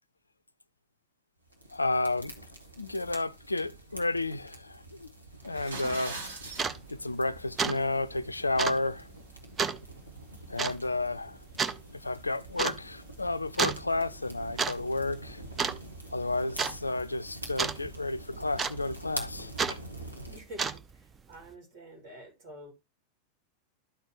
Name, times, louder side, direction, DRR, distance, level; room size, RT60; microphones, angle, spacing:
sound 1, 1.5-20.4, right 1 dB, 85° right, 1.4 m, -46 dB
voice 1, 1.7-2.4 2.8-5.1 5.4-6.2 6.9-9.1 10.5-11.4 11.9-15.4 16.1-19.8, left 2 dB, 80° left, 0.4 m, -32 dB
sound 2, 5.4-6.7, right 3 dB, 70° right, 1.6 m, -39 dB
sound 3, 6.5-6.8 7.2-7.3 7.6-7.8 8.0-8.1 8.6-8.8 9.6-9.8 10.6-10.8 11.6-11.8 12.6-12.8 13.6-13.8 14.4-14.8 15.0-15.3 15.6-16.1 16.6-16.8 17.6-17.8 18.6-19.0 19.6-19.8 20.4-20.9, right 5 dB, 20° right, 0.6 m, -30 dB
voice 2, 20.3-22.7, equal, 50° right, 3.5 m, -48 dB
12.5 x 4.5 x 3.0 m
figure-of-eight pair, 90°, 0 cm